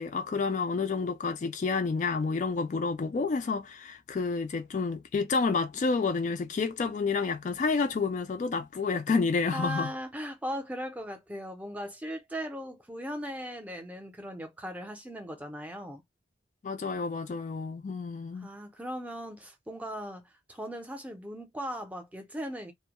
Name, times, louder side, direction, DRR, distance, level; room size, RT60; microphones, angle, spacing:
voice 1, 0.0-9.9 16.6-18.5, left 4 dB, 40° left, 0.3 m, -29 dB
voice 2, 9.5-16.0 18.4-20.2 20.5-22.7, equal, 10° right, 0.5 m, -38 dB
2.2 x 2.0 x 2.8 m
head